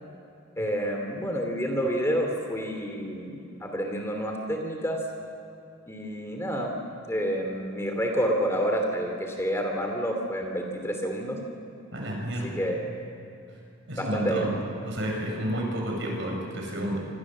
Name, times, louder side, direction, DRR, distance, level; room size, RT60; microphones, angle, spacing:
voice 1, 0.6-5.0 5.9-6.7 7.0-11.4 12.4-12.8 14.0-14.6, equal, 15° left, 2 dB, 2.8 m, -29 dB
voice 2, 11.9-12.6 13.9-14.6 14.8-17.0, equal, 60° right, 0 dB, 7.6 m, -30 dB
27.0 x 26.5 x 7.4 m, 2.7 s
head